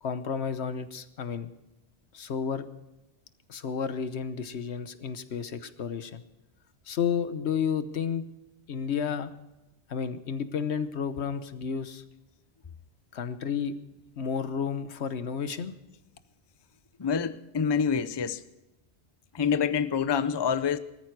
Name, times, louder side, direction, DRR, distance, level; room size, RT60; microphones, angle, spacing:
voice 1, 0.0-1.5 2.1-2.7 3.5-6.2 6.9-8.3 8.7-9.3 9.9-12.0 13.1-13.7 14.2-15.7, left 6 dB, 85° left, 1.2 m, -31 dB
voice 2, 17.0-18.4 19.3-20.8, left 6 dB, 30° left, 0.5 m, -26 dB
19.0 x 14.0 x 4.7 m
omnidirectional pair, 1.1 m